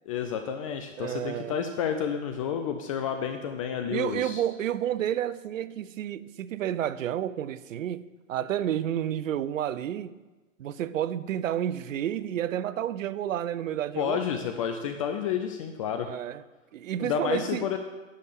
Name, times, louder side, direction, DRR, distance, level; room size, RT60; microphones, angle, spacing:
voice 1, 0.1-4.4 14.0-16.1 17.0-17.8, left 8 dB, 25° left, 0.4 m, -30 dB
voice 2, 1.0-1.6 3.9-10.2 10.6-14.2 15.9-16.4 16.7-17.8, right 11 dB, 75° right, 0.6 m, -30 dB
10.0 x 3.5 x 6.6 m
hypercardioid pair, 125°, 40 cm